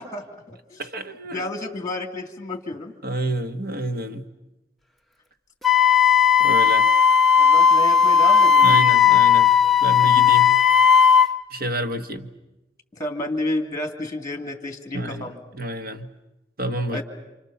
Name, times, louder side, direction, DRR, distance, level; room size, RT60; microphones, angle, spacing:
voice 1, 0.0-0.9 1.3-2.9 7.4-8.8 12.9-15.4 16.9-17.0, left 1 dB, 20° left, 2.8 m, -31 dB
voice 2, 0.8-1.5 3.0-4.3 6.4-6.9 8.6-9.5 9.8-10.6 11.5-12.3 14.9-15.2 15.5-16.1 16.6-17.0, right 1 dB, 55° right, 1.5 m, -29 dB
Wind instrument woodwind instrument, 5.6-11.3, left 7 dB, ahead, 0.9 m, -15 dB
29.5 x 26.5 x 7.1 m
head